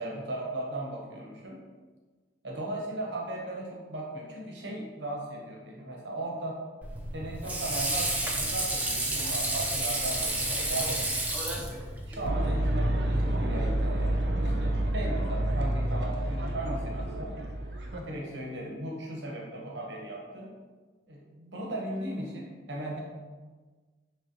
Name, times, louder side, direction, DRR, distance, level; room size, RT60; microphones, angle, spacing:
voice 1, 0.0-1.6 2.4-6.6 7.1-11.0 11.6-17.3 17.9-20.5 21.1-23.0, right 1 dB, 90° right, -2 dB, 0.9 m, -37 dB
Water / Sink (filling or washing), 6.8-12.3, right 1 dB, 10° right, 0.4 m, -30 dB
sound 1, 12.2-18.0, right 1 dB, 70° right, 0.5 m, -28 dB
4.1 x 3.3 x 2.7 m, 1.4 s
head